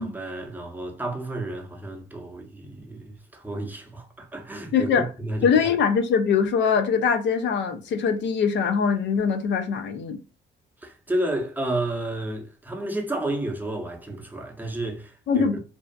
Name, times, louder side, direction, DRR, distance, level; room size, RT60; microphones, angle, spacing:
voice 1, 0.0-5.5 10.8-15.6, right 1 dB, 10° right, 0.7 m, -31 dB
voice 2, 4.7-5.1 5.4-10.2 15.3-15.6, left 6 dB, 65° left, 0.5 m, -22 dB
2.6 x 2.4 x 2.2 m
cardioid pair, 90°, 20 cm